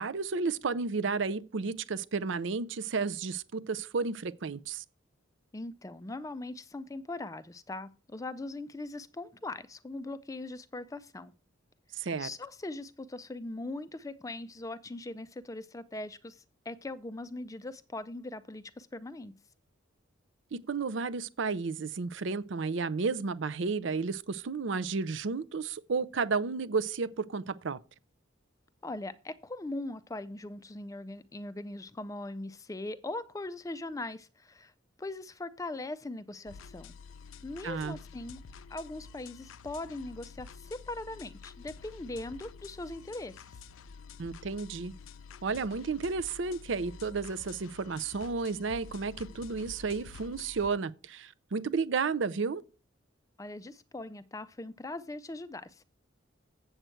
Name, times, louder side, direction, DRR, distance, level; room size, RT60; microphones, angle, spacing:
voice 1, 0.0-4.8 11.9-12.3 20.5-27.8 37.6-38.0 44.2-44.9 45.4-52.6, right 4 dB, 65° right, 0.5 m, -32 dB
voice 2, 5.5-11.3 12.0-19.4 28.8-34.7 35.0-36.9 37.4-38.4 38.7-43.6 53.4-55.8, left 2 dB, 15° left, 0.4 m, -40 dB
sound 1, 36.5-50.7, left 5 dB, 85° left, 0.5 m, -49 dB
7.9 x 7.7 x 4.5 m
head